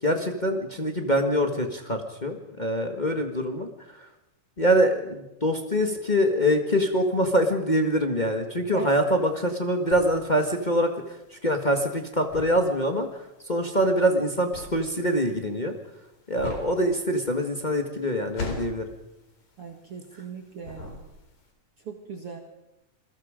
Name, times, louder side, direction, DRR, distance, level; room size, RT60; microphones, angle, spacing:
voice 1, 0.0-4.1 4.6-15.7 16.3-18.8, equal, 35° left, 4 dB, 0.7 m, -24 dB
sound 1, 9.1-20.3 20.6-21.5, left 4 dB, 65° left, 5.2 m, -40 dB
voice 2, 19.6-21.0 21.8-22.4, right 6 dB, 50° right, 3 dB, 2.4 m, -39 dB
28.0 x 22.0 x 5.1 m, 0.90 s
omnidirectional pair, 3.8 m